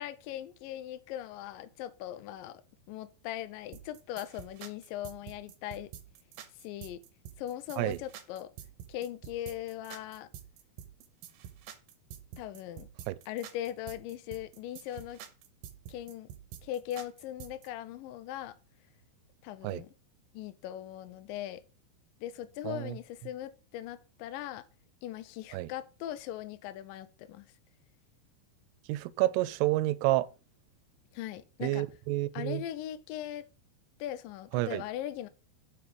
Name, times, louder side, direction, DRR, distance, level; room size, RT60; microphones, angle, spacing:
voice 1, 0.0-2.6 2.9-5.9 6.5-7.0 7.4-8.5 8.9-10.3 12.4-12.9 13.3-15.2 15.9-16.3 16.6-18.6 19.4-19.9 20.3-21.6 22.2-24.7 25.0-27.5 31.1-31.9 32.3-33.5 34.0-35.3, left 12 dB, 80° left, 2.1 m, -40 dB
sound 1, 3.7-17.7, right 10 dB, 70° right, 2.5 m, -48 dB
voice 2, 28.9-30.3 31.6-32.6 34.5-34.8, right 17 dB, 90° right, 2.6 m, -29 dB
7.0 x 4.6 x 6.8 m
omnidirectional pair, 4.7 m